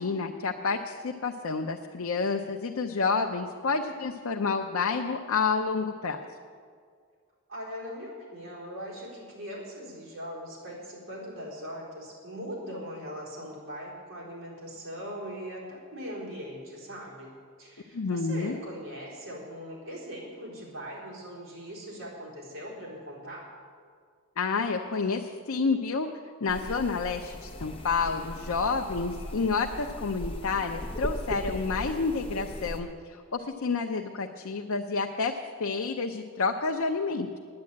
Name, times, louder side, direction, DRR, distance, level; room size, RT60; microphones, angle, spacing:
voice 1, 0.0-6.3 17.9-18.6 24.4-26.1 26.4-35.3 35.6-37.4, left 4 dB, 85° left, 3 dB, 0.6 m, -29 dB
voice 2, 7.5-17.3 17.6-23.5, equal, 70° right, -5 dB, 4.1 m, -40 dB
sound 1, 26.5-32.8, left 1 dB, 25° left, 1.0 m, -38 dB
9.7 x 9.6 x 8.6 m, 2.1 s
head